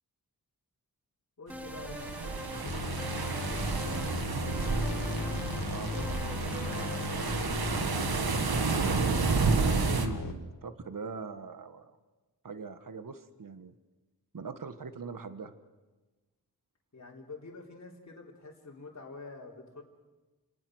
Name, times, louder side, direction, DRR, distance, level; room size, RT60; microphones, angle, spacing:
voice 1, 1.4-2.9 4.5-5.1 16.9-19.8, left 3 dB, 45° left, -4 dB, 3.7 m, -48 dB
sound 1, 1.5-2.7 3.0-4.2 4.5-5.6 5.9-7.1, equal, 5° right, 1.6 m, -44 dB
sound 2, 1.5-10.1, right 4 dB, 75° right, 1.7 m, -31 dB
sound 3, 2.6-10.3, left 3 dB, 60° left, 2.2 m, -36 dB
voice 2, 5.6-11.9 12.4-13.7 14.3-15.5, right 5 dB, 60° right, 10 dB, 1.5 m, -42 dB
29.5 x 19.0 x 6.4 m, 1.2 s
wide cardioid pair, 100°, 37 cm